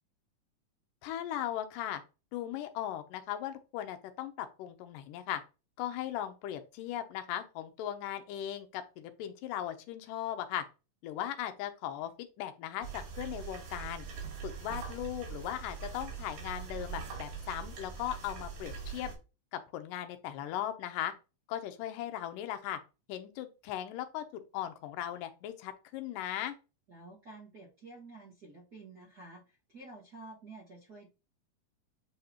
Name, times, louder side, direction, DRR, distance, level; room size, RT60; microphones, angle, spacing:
voice 1, 1.0-2.0 2.3-5.4 5.8-10.6 11.0-14.1 14.4-19.1 19.5-21.1 21.5-22.8 23.1-26.6, left 11 dB, 80° left, 8 dB, 2.3 m, -38 dB
sound 1, 12.8-19.2, right 6 dB, 80° right, 3.8 m, -42 dB
voice 2, 26.9-31.1, right 2 dB, 45° right, -4 dB, 1.4 m, -50 dB
8.5 x 4.0 x 2.9 m, 0.30 s
omnidirectional pair, 4.0 m